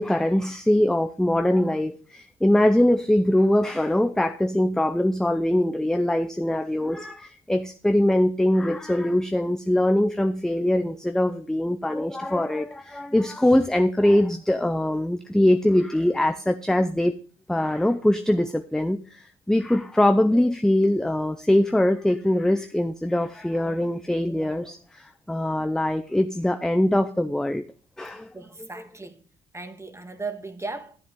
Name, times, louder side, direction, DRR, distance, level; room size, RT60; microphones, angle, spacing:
voice 1, 0.0-17.2 17.5-27.6 28.0-28.3, left 1 dB, 5° left, 0.6 m, -22 dB
voice 2, 28.3-29.2 29.5-31.0, right 3 dB, 15° right, 1.6 m, -36 dB
13.0 x 8.0 x 3.7 m
cardioid pair, 90°, 20 cm